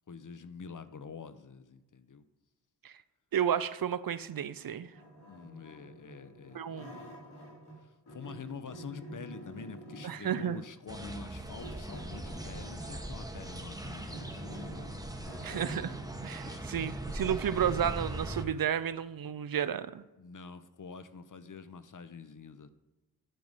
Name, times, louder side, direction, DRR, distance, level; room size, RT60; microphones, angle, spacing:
voice 1, 0.1-2.2 5.3-6.9 7.8-14.8 15.1-15.2 16.4-16.7 20.2-22.7, left 5 dB, 55° left, 12 dB, 0.7 m, -47 dB
voice 2, 3.3-4.9 6.5-7.0 10.0-10.6 15.4-16.0 16.2-20.0, right 9 dB, 60° right, 15 dB, 0.5 m, -32 dB
sound 1, 4.9-7.8 8.1-10.8 11.6-13.2 13.6-16.1, right 1 dB, 80° left, 2.7 m, -47 dB
sound 2, 10.9-18.4, right 1 dB, 10° right, 0.9 m, -40 dB
10.0 x 3.9 x 5.2 m, 1.1 s
cardioid pair, 45°, 39 cm